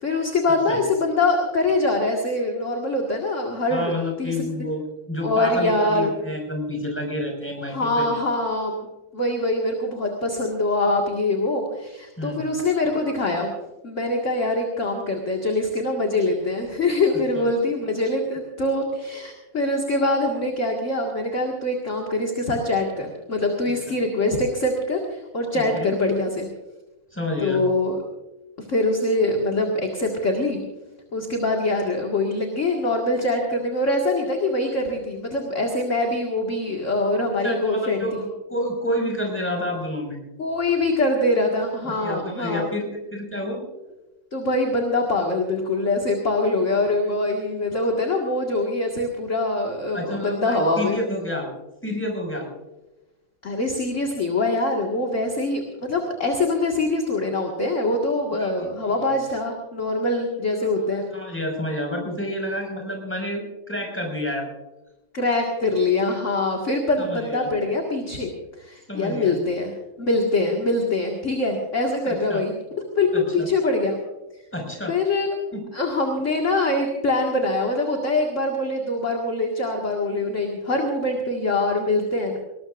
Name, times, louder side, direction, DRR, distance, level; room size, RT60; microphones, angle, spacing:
voice 1, 0.0-3.9 4.2-4.5 5.2-6.1 7.7-8.9 9.1-13.5 13.8-26.5 27.4-28.0 28.7-30.6 31.1-38.0 40.4-42.7 44.3-51.0 53.4-61.1 65.1-68.3 68.6-69.7 70.0-72.5 73.0-74.0 74.9-75.3 75.7-82.4, left 2 dB, 35° left, 0 dB, 2.2 m, -23 dB
voice 2, 3.7-8.2 12.2-12.4 17.3-17.4 25.5-25.9 27.1-27.6 37.4-40.2 41.8-42.8 43.1-43.6 49.9-51.5 51.8-52.5 58.4-59.1 61.1-64.5 67.0-67.5 68.9-69.4 72.0-72.4 73.1-73.5 74.5-75.0 75.5-75.6, left 1 dB, 5° left, 0 dB, 5.5 m, -29 dB
20.0 x 20.0 x 2.6 m, 1.0 s
omnidirectional pair, 2.3 m